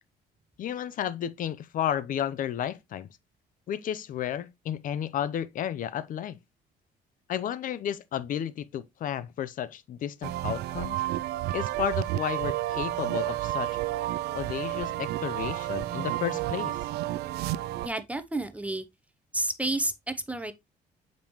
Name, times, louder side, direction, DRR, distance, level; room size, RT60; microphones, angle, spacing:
voice 1, 0.6-3.1 3.7-6.4 7.3-11.0 11.5-13.8 14.3-16.8, left 10 dB, 55° left, 0.6 m, -32 dB
sound 1, 10.2-17.9, right 16 dB, 75° right, 0.4 m, -31 dB
voice 2, 17.8-18.8 19.3-20.5, right 2 dB, 10° right, 0.7 m, -30 dB
7.0 x 5.3 x 3.0 m
cardioid pair, 110°, 17 cm